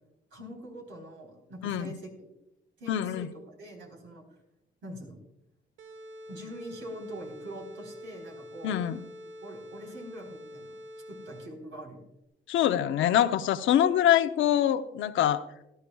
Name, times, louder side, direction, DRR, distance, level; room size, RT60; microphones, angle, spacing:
voice 1, 0.3-2.1 2.8-4.2 4.8-5.2 6.3-8.8 9.4-10.8 11.1-12.1, right 1 dB, 75° right, 1 dB, 3.9 m, -44 dB
voice 2, 2.9-3.3 8.6-9.0 12.5-15.4, left 11 dB, 80° left, 10 dB, 0.7 m, -24 dB
sound 1, 5.8-11.7, equal, 90° right, 1.0 m, -46 dB
17.5 x 12.5 x 2.3 m, 0.90 s
cardioid pair, 90°, 20 cm